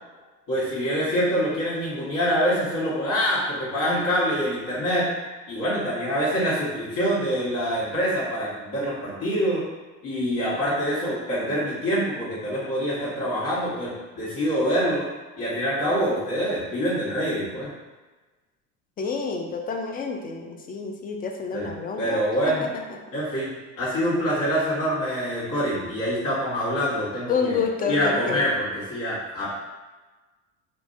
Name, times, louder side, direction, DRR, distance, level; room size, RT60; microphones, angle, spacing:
voice 1, 0.5-5.1 5.5-9.6 10.0-15.1 15.4-17.7 21.5-21.7 22.0-22.6 23.1-29.5, equal, 60° left, -10 dB, 1.4 m, -25 dB
voice 2, 19.0-22.7 27.3-28.4, left 5 dB, 25° left, 3 dB, 0.3 m, -29 dB
2.8 x 2.5 x 2.5 m, 1.2 s
supercardioid pair, 85°, 38 cm